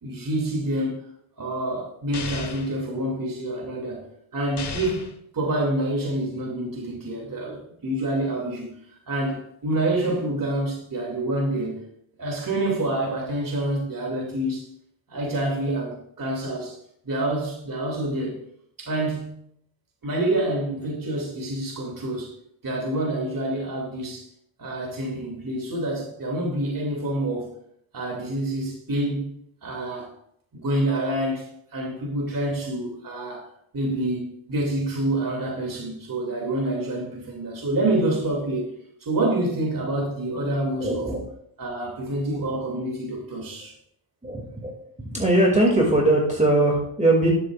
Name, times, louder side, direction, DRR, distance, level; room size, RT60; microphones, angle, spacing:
voice 1, 0.0-1.0 1.4-4.0 4.3-8.7 9.1-11.8 12.2-14.7 15.1-16.8 17.0-18.4 18.8-19.4 20.0-22.3 22.6-24.3 24.6-27.5 27.9-29.3 29.6-30.1 30.5-31.5 31.7-33.5 33.7-38.7 39.0-41.1 41.6-43.7, right 1 dB, 45° right, 2.6 m, -27 dB
sound 1, 2.1-2.7 4.6-5.2, left 6 dB, 55° left, 1.5 m, -34 dB
voice 2, 40.8-41.2 44.2-44.7 45.1-47.3, right 1 dB, 15° right, 2.4 m, -20 dB
11.5 x 8.1 x 2.5 m
cardioid pair, 75°, 49 cm